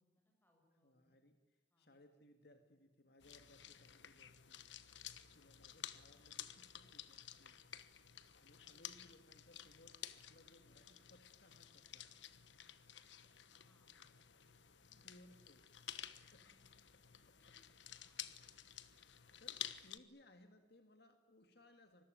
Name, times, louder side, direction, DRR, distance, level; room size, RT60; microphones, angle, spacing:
voice 1, 0.0-1.2 1.7-1.9 13.2-14.6 14.9-15.0 15.9-16.8 17.4-17.6 17.9-18.5, left 1 dB, 10° left, 1 dB, 7.7 m, -78 dB
voice 2, 0.8-4.7 5.3-7.6 8.3-12.2 15.0-15.7 16.3-16.4 16.9-17.8 18.9-22.0, left 1 dB, 60° left, 6 dB, 2.0 m, -66 dB
sound 1, 3.2-20.0, left 11 dB, 75° left, 1.2 m, -53 dB
25.5 x 20.5 x 9.0 m, 1.0 s
head